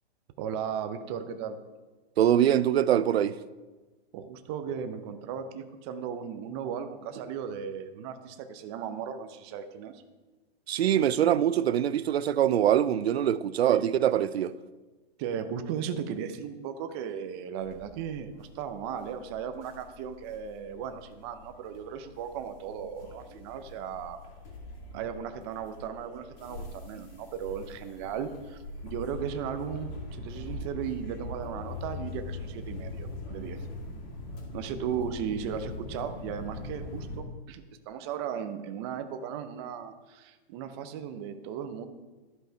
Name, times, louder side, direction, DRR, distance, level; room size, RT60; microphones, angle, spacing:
voice 1, 0.4-1.6 4.1-10.0 13.7-13.8 15.2-24.2 24.9-33.7 34.5-41.9, right 8 dB, 25° right, 0.6 m, -36 dB
voice 2, 2.2-3.3 10.7-14.5 33.3-33.5, right 10 dB, 85° right, 0.5 m, -24 dB
sound 1, 17.6-37.2, left 2 dB, 35° left, 2.4 m, -42 dB
12.5 x 5.4 x 4.4 m
hypercardioid pair, 150°, 30 cm